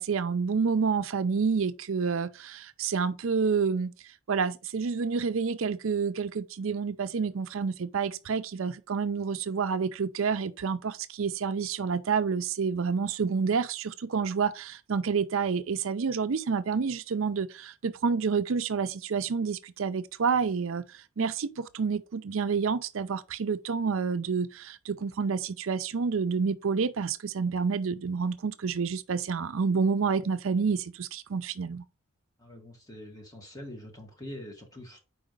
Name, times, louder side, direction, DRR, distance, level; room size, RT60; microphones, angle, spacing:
voice 1, 0.0-3.9 4.3-31.8, right 5 dB, 70° right, 0.5 m, -29 dB
voice 2, 32.4-35.0, left 1 dB, 15° left, 1.8 m, -44 dB
4.9 x 4.7 x 5.2 m
head